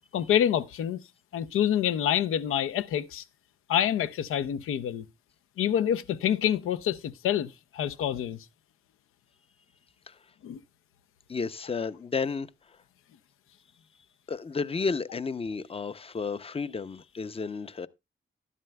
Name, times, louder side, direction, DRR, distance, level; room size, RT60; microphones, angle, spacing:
voice 1, 0.1-1.0 1.3-3.2 3.7-5.0 5.6-8.4 10.4-10.6, left 10 dB, 85° left, 0.6 m, -27 dB
voice 2, 11.3-12.5 14.3-17.9, left 4 dB, 25° left, 0.6 m, -32 dB
12.0 x 11.0 x 2.2 m
cardioid pair, 60°, 21 cm